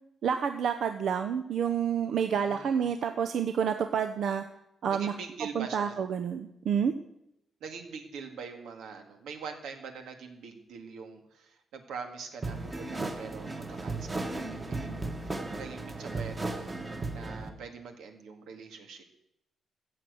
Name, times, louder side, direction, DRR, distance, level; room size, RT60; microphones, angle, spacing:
voice 1, 0.2-4.4 4.8-5.1 5.5-6.9, right 7 dB, 60° right, 7 dB, 0.7 m, -29 dB
voice 2, 2.3-2.9 4.9-6.0 7.6-16.8 17.1-19.0, right 5 dB, 90° right, 5 dB, 2.0 m, -44 dB
sound 1, 12.4-17.5, right 2 dB, 20° right, 1.4 m, -35 dB
14.0 x 7.7 x 7.9 m, 0.81 s
cardioid pair, 135°, 0 cm